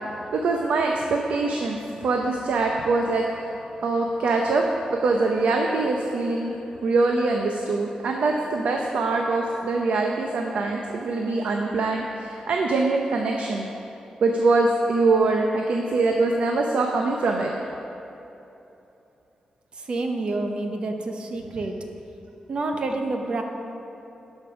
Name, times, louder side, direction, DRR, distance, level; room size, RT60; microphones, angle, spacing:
voice 1, 0.3-3.5 3.8-4.6 4.9-6.5 6.8-13.7 14.2-17.5, right 3 dB, 85° right, 1 dB, 0.6 m, -23 dB
voice 2, 19.8-21.7 22.5-23.4, right 2 dB, 45° right, 4 dB, 0.8 m, -28 dB
11.5 x 5.4 x 6.1 m, 2.9 s
wide cardioid pair, 165°, 2 cm